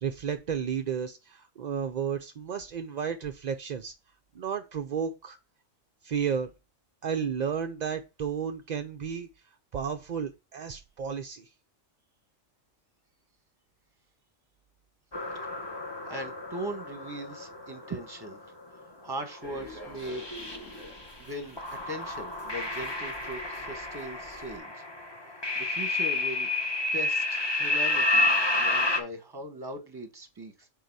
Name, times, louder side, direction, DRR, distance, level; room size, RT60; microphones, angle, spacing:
voice 1, 0.0-3.9 4.3-5.4 6.0-6.5 7.0-9.3 9.7-11.5, right 7 dB, 60° right, 0.4 m, -32 dB
sound 1, 15.1-18.4 19.1-19.4 19.7-21.1 21.6-29.0, left 2 dB, 20° left, 1.0 m, -30 dB
voice 2, 16.1-18.4 19.0-20.2 21.2-24.7 25.6-26.5 26.9-28.3 28.6-30.7, right 1 dB, 20° right, 1.1 m, -39 dB
sound 2, 19.4-24.6, equal, 70° left, 2.5 m, -48 dB
6.5 x 4.0 x 4.6 m
omnidirectional pair, 1.3 m